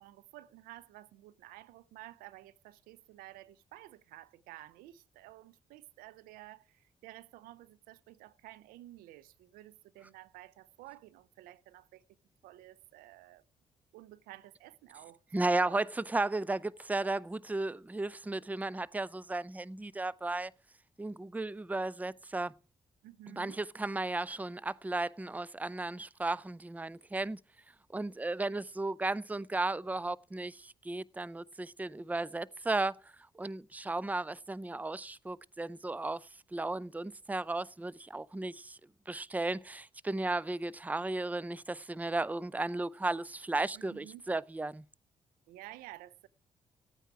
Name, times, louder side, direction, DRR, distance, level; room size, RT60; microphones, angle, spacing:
voice 1, 0.0-12.0 12.4-13.4 13.9-15.2 15.6-15.8 23.0-23.6 43.7-44.2 45.5-46.3, right 16 dB, 85° right, 0.6 m, -52 dB
voice 2, 15.3-20.5 21.0-22.5 23.3-27.4 27.9-32.9 33.4-38.8 39.1-44.8, right 2 dB, 10° right, 0.5 m, -35 dB
15.0 x 9.1 x 4.7 m
hypercardioid pair, 45°, 14 cm